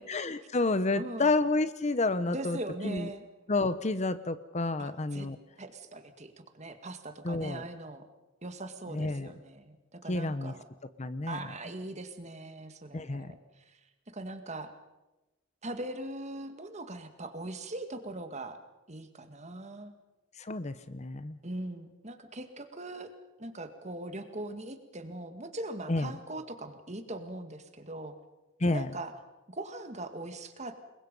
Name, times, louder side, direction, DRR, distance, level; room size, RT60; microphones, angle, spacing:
voice 1, 0.1-2.6 2.8-3.1 3.5-5.4 7.2-7.6 8.9-9.3 10.1-10.5 11.0-11.4 12.9-13.3 20.4-21.4 25.9-26.1 28.6-28.9, left 2 dB, 35° left, 13 dB, 0.8 m, -30 dB
voice 2, 0.9-1.3 2.2-3.2 4.8-5.3 5.6-8.0 8.4-10.6 11.3-13.8 14.1-14.7 15.6-18.6 18.9-19.9 21.4-23.1 23.4-28.2 28.7-29.1 29.5-30.9, right 2 dB, 35° right, 8 dB, 2.0 m, -41 dB
28.5 x 22.0 x 5.4 m, 1.0 s
head